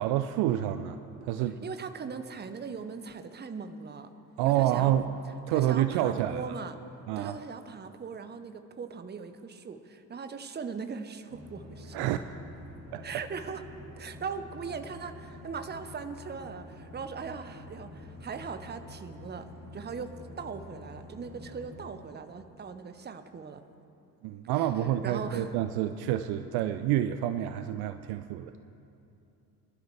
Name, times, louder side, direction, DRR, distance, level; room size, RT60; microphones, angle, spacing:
voice 1, 0.0-1.7 4.4-5.1 5.5-6.5 7.1-7.3 11.9-12.2 12.9-13.0 24.2-28.7, right 12 dB, 50° right, 10 dB, 0.6 m, -28 dB
voice 2, 1.6-4.1 4.4-4.9 5.5-6.8 7.2-12.1 13.0-13.7 14.0-23.6 24.5-24.7 25.0-25.5, right 5 dB, 20° right, 9 dB, 0.8 m, -40 dB
sound 1, 11.3-21.9, left 2 dB, 85° right, 3.7 m, -47 dB
23.5 x 11.5 x 3.3 m, 2.7 s
figure-of-eight pair, 50°, 50 cm